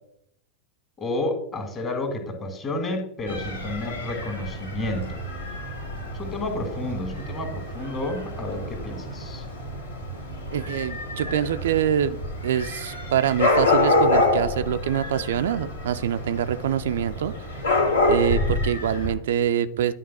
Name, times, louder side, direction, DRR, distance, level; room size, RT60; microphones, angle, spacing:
voice 1, 1.0-5.2 6.1-9.5, left 1 dB, 25° left, 6 dB, 2.0 m, -30 dB
Dog / Cat, 3.3-19.1, left 2 dB, 70° left, 2.2 m, -27 dB
voice 2, 10.5-12.2 12.4-17.3 18.1-19.9, right 9 dB, 60° right, 11 dB, 0.4 m, -25 dB
10.0 x 3.9 x 6.0 m, 0.73 s
figure-of-eight pair, 90°, 0 cm